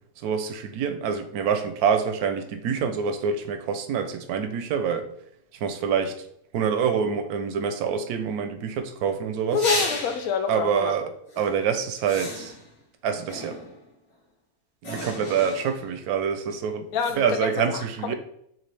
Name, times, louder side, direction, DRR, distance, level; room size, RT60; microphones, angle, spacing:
voice 1, 0.2-5.1 5.6-6.2 6.5-9.6 10.5-11.1 11.4-12.5 13.0-13.6 14.8-16.9 17.2-18.1, right 7 dB, 90° right, 1.1 m, -26 dB
voice 2, 9.5-11.1 16.9-18.1, left 5 dB, 80° left, 1.0 m, -27 dB
sound 1, 9.5-10.4 11.3-11.5 12.0-12.8 13.3-13.9 14.8-15.9 17.0-17.1, left 2 dB, 65° left, 1.9 m, -33 dB
5.9 x 2.4 x 3.3 m
omnidirectional pair, 1.5 m